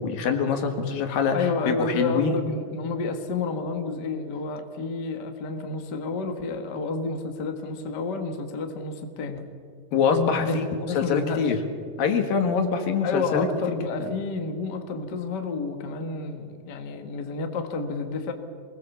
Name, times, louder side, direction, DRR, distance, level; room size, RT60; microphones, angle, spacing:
voice 1, 0.0-1.4 1.7-2.4 9.9-10.7 11.0-11.6 12.0-13.5, left 6 dB, 75° left, 6 dB, 3.4 m, -24 dB
voice 2, 1.3-9.5 10.4-11.6 13.0-18.3, left 3 dB, 45° left, 5 dB, 1.5 m, -30 dB
23.5 x 20.0 x 7.2 m, 2.1 s
omnidirectional pair, 4.1 m